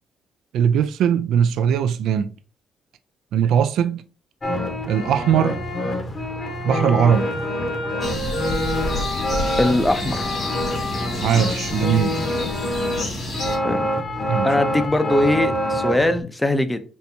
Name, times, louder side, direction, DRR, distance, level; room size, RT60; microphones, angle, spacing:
voice 1, 0.5-2.3 3.3-4.0 4.9-5.6 6.6-7.3 11.2-12.2 14.3-14.5, right 8 dB, 80° right, 0.3 m, -20 dB
sound 1, 4.4-16.2, equal, 35° left, 1.1 m, -26 dB
sound 2, 8.0-13.6, left 2 dB, 50° left, 2.0 m, -29 dB
voice 2, 9.6-10.3 13.6-13.9 14.4-16.8, left 1 dB, 10° left, 0.6 m, -21 dB
4.1 x 3.3 x 2.7 m
cardioid pair, 90°, 0 cm